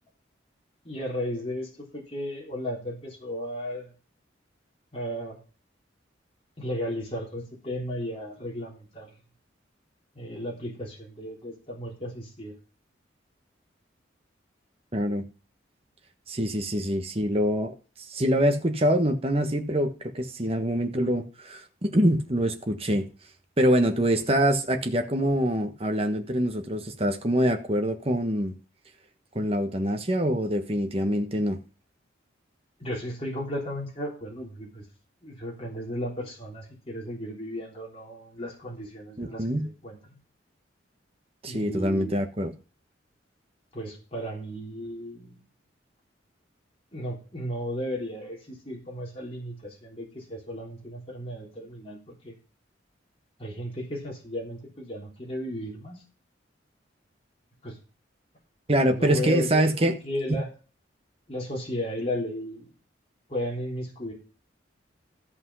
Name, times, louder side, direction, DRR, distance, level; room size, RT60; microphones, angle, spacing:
voice 1, 0.8-3.9 4.9-5.4 6.6-9.1 10.1-12.5 32.8-34.8 35.2-40.0 41.5-42.1 43.7-45.4 46.9-52.3 53.4-56.0 57.6-57.8 58.8-60.5 61.3-62.7 63.3-64.1, equal, 30° left, 3.5 m, -34 dB
voice 2, 14.9-15.2 16.3-17.7 18.1-23.1 23.6-28.5 29.3-31.6 39.2-39.7 41.4-42.5 58.7-60.0, equal, 30° right, 1.4 m, -25 dB
14.0 x 5.5 x 5.5 m
head